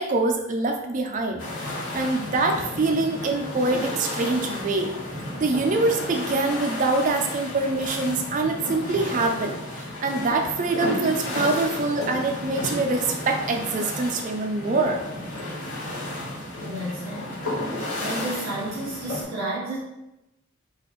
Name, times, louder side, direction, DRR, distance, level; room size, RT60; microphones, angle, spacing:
voice 1, 0.0-4.9 5.4-15.0, right 3 dB, 35° right, 4 dB, 0.3 m, -25 dB
sound 1, 1.4-19.2, left 1 dB, 75° left, 1.1 m, -33 dB
voice 2, 16.6-17.4 17.7-19.8, right 1 dB, 60° right, -9 dB, 1.2 m, -32 dB
3.9 x 2.4 x 3.0 m, 0.93 s
head